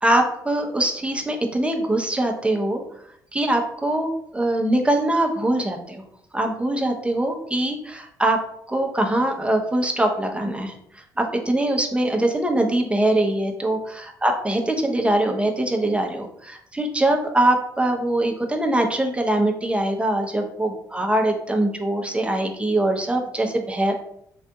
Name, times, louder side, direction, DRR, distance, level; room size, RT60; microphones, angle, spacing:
voice 1, 0.0-2.8 3.3-6.0 6.3-8.4 8.7-24.2, right 1 dB, 10° right, 3 dB, 0.7 m, -23 dB
3.7 x 2.5 x 2.3 m, 0.69 s
hypercardioid pair, 50°, 10 cm